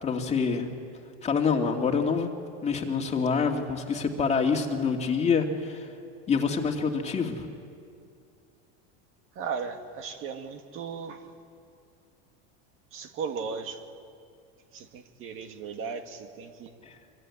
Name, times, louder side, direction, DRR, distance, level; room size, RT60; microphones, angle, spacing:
voice 1, 0.0-0.7 1.2-2.3 2.6-5.9 6.3-7.5 16.8-17.0, left 5 dB, 20° left, 3 dB, 2.2 m, -26 dB
voice 2, 9.4-11.3 12.9-13.9 14.7-16.7, right 5 dB, 40° right, 6 dB, 1.9 m, -36 dB
25.0 x 24.0 x 9.7 m, 2.4 s
supercardioid pair, 145°, 31 cm